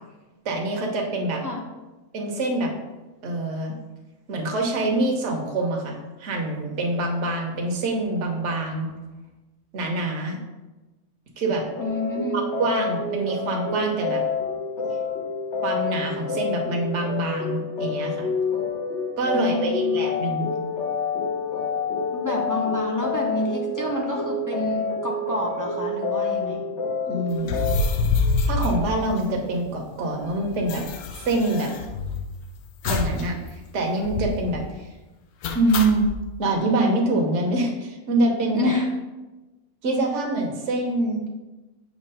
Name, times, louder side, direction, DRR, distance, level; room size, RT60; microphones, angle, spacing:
voice 1, 0.4-1.4 2.1-2.7 3.2-3.7 4.3-8.9 9.7-10.4 11.4-11.6 12.3-14.2 15.6-18.3 19.2-20.5 27.1-27.6 28.5-30.8 31.2-31.7 32.8-34.9 35.5-36.0 36.4-38.7 39.8-41.2, right 2 dB, 55° right, 1 dB, 1.2 m, -25 dB
sound 1, 11.7-27.8, left 4 dB, 55° left, 1.2 m, -28 dB
voice 2, 11.8-12.4 19.3-19.9 22.1-26.7 38.5-38.9, left 2 dB, 20° left, -2 dB, 0.6 m, -28 dB
sound 2, 27.4-29.7 30.0-30.1 30.2-32.3 32.8-33.3 33.5-33.6 34.0-34.5 35.4-36.2, left 4 dB, 80° left, 1.1 m, -26 dB
7.4 x 3.0 x 5.5 m, 1.1 s
omnidirectional pair, 1.5 m